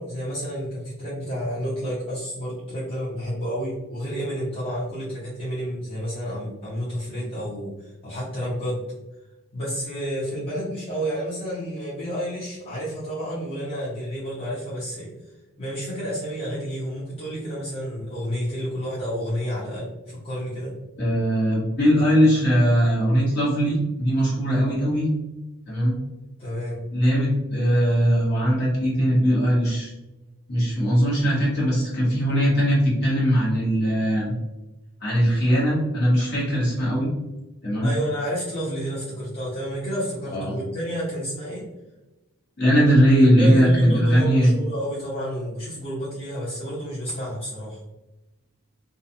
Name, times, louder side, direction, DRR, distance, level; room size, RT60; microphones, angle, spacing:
voice 1, 0.0-8.8 9.5-15.1 15.6-20.7 26.4-26.8 37.8-41.6 43.4-47.8, equal, 25° left, -11 dB, 0.8 m, -30 dB
voice 2, 21.0-25.1 25.7-26.0 26.9-29.9 30.5-34.3 35.0-37.1 37.6-37.9 40.3-40.6 42.6-44.5, equal, 50° left, -6 dB, 1.1 m, -20 dB
2.4 x 2.3 x 2.6 m, 1.0 s
head